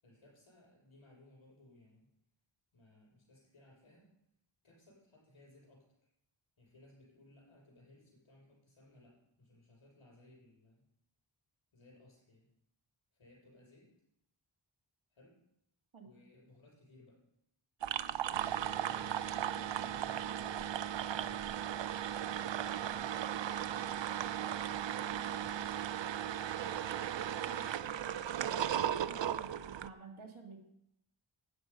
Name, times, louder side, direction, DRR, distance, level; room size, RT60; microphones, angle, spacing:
voice 1, 0.0-2.1 2.7-4.1 4.6-5.9 6.6-10.8 11.7-12.5 13.1-13.9 15.1-15.4 16.0-17.2 18.6-21.5 22.4-23.3 23.6-24.2 24.7-25.8, left 2 dB, 85° left, -4 dB, 6.0 m, -61 dB
sound 1, 17.8-29.9, right 10 dB, 70° right, 0.6 m, -36 dB
voice 2, 27.0-28.1 28.9-30.6, right 5 dB, 85° right, 2 dB, 2.2 m, -52 dB
12.0 x 9.0 x 5.4 m, 0.79 s
wide cardioid pair, 55°, 47 cm